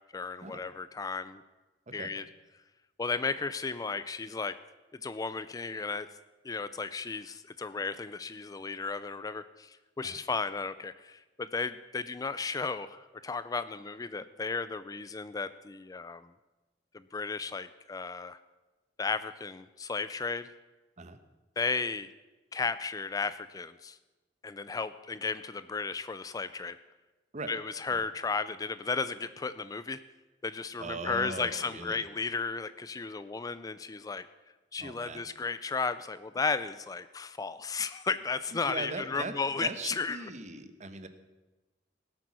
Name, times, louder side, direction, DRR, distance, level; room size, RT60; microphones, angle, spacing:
voice 1, 0.1-1.4 1.9-2.2 3.0-4.6 4.9-6.1 6.4-16.3 16.9-18.4 19.0-20.5 21.6-22.1 22.5-24.0 24.4-26.8 27.5-30.0 30.4-34.3 34.7-40.2, left 4 dB, 20° left, 14 dB, 0.4 m, -34 dB
voice 2, 30.8-32.0 34.8-35.2 38.5-41.1, right 3 dB, 40° right, 10 dB, 1.0 m, -40 dB
18.0 x 8.2 x 6.2 m, 1.1 s
head